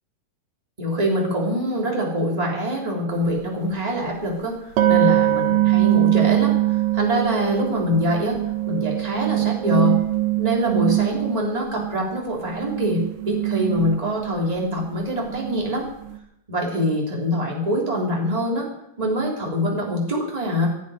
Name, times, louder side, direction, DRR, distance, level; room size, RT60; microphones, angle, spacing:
voice 1, 0.8-6.5 6.9-8.4 8.7-10.0 10.4-15.8 16.5-18.7 19.0-20.7, equal, 10° right, -2 dB, 3.2 m, -24 dB
sound 1, 3.2-3.3 4.8-12.2 12.4-16.2, right 15 dB, 65° right, 2.6 m, -22 dB
20.0 x 12.5 x 5.1 m, 0.78 s
omnidirectional pair, 4.6 m